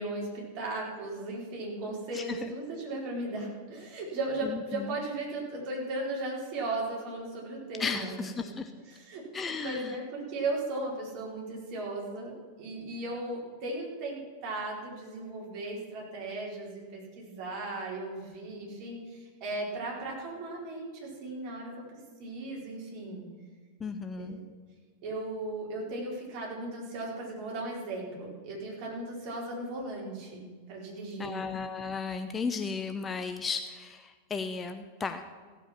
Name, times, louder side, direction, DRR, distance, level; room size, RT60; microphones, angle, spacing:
voice 1, 0.0-8.5 8.9-23.2 24.2-24.4 25.0-31.4, right 2 dB, 40° right, -3 dB, 4.2 m, -37 dB
voice 2, 2.1-2.5 4.4-5.0 7.8-8.7 9.3-10.0 23.8-24.4 31.2-35.2, left 5 dB, 20° left, 8 dB, 0.6 m, -35 dB
16.0 x 8.0 x 6.0 m, 1.5 s
figure-of-eight pair, 90°, 0 cm